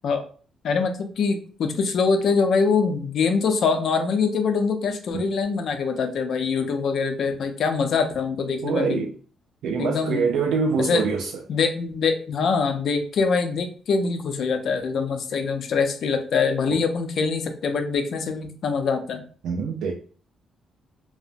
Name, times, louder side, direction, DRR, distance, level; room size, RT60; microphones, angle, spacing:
voice 1, 0.6-9.0 9.8-10.3 10.8-11.0 11.5-19.2, left 5 dB, 65° left, 0.5 m, -24 dB
voice 2, 8.6-9.1 9.6-11.4 16.7-16.8 19.4-19.9, right 5 dB, 85° right, 0.3 m, -24 dB
2.8 x 2.0 x 2.5 m
cardioid pair, 115°, 0 cm